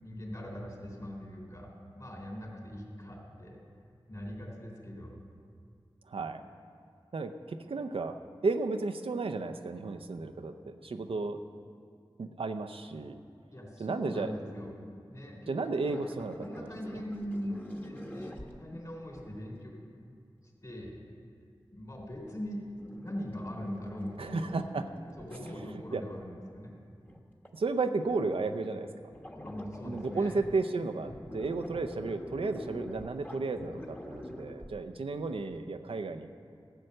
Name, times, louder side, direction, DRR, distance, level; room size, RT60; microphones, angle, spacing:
voice 1, 0.0-3.6 4.1-5.2 13.5-14.7 15.1-16.0 16.4-19.7 20.6-21.0 21.7-22.6 23.0-24.6 25.2-26.8 29.4-30.4, equal, 40° left, -1 dB, 3.5 m, -41 dB
voice 2, 6.1-6.4 7.1-11.4 12.2-13.2 13.8-14.3 15.5-17.0 24.2-24.9 25.4-26.0 27.5-28.9 29.8-36.3, right 3 dB, 90° right, 7 dB, 0.6 m, -33 dB
sound 1, 15.8-19.4 22.0-25.6 26.4-26.5 26.8-27.2 27.5-27.6 27.8-28.7 29.0-30.7 31.0-35.1 35.5-35.6, left 1 dB, 20° left, 1.3 m, -46 dB
14.0 x 7.6 x 6.6 m, 2.3 s
wide cardioid pair, 45°, 9 cm